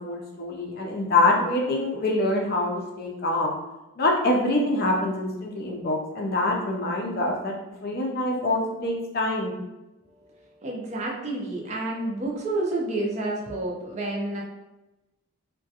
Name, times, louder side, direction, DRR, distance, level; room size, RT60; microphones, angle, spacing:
voice 1, 0.0-3.6 4.0-9.5, left 2 dB, 45° left, 0 dB, 0.4 m, -25 dB
voice 2, 10.1-14.4, right 2 dB, 30° right, -2 dB, 0.4 m, -30 dB
2.4 x 2.2 x 2.7 m, 0.99 s
head